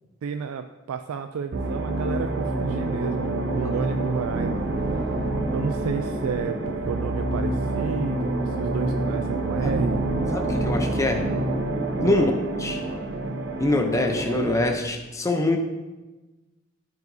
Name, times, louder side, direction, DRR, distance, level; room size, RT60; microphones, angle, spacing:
voice 1, 0.2-4.6 5.5-6.6 6.9-10.0 12.0-12.3, right 6 dB, 80° right, 7 dB, 0.3 m, -31 dB
sound 1, 1.5-14.8, right 2 dB, 50° right, 0.8 m, -27 dB
voice 2, 10.3-11.3 12.0-12.3 12.6-12.9 13.6-15.6, left 2 dB, 15° left, 4 dB, 0.6 m, -24 dB
13.5 x 4.8 x 2.7 m, 1.1 s
head